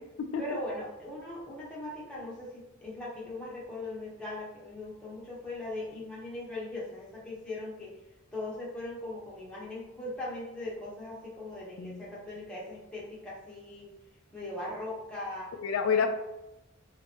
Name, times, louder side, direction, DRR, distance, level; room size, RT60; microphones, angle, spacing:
voice 1, 0.4-7.9 8.3-13.9 14.3-15.5 16.0-16.1, left 1 dB, 5° left, -6 dB, 0.9 m, -39 dB
voice 2, 15.6-16.1, left 6 dB, 70° left, 5 dB, 0.3 m, -28 dB
3.2 x 2.9 x 2.9 m, 0.97 s
head